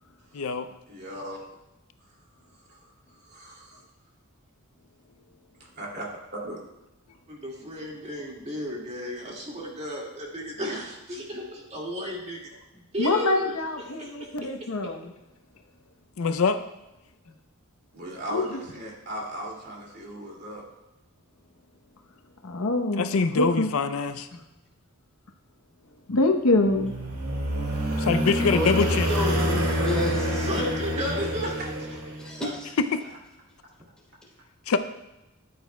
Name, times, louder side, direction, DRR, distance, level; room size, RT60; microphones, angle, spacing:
voice 1, 0.3-0.7 16.2-16.6 23.0-24.3 28.0-29.1 32.9-33.0 34.7-34.8, left 4 dB, 70° left, 10 dB, 0.5 m, -24 dB
voice 2, 0.9-1.4 2.6-2.8 3.2-3.9 5.8-6.0 6.4-6.6 17.9-20.6 31.2-31.3 32.4-32.5, right 1 dB, 50° right, -2 dB, 2.5 m, -37 dB
voice 3, 7.3-12.4 12.7-13.5 14.0-14.7 30.4-31.6, equal, 30° right, -2 dB, 2.1 m, -34 dB
voice 4, 13.0-15.1 18.3-18.4 22.4-23.1 23.4-23.7 24.3-24.4 26.1-26.9, left 2 dB, 85° left, 4 dB, 0.9 m, -25 dB
snowmobile pass by medium speed, 26.6-32.4, equal, 90° right, 1.9 m, -27 dB
voice 5, 28.5-30.6 32.2-32.7, left 1 dB, 5° left, -5 dB, 3.3 m, -31 dB
13.5 x 9.5 x 2.3 m, 0.97 s
head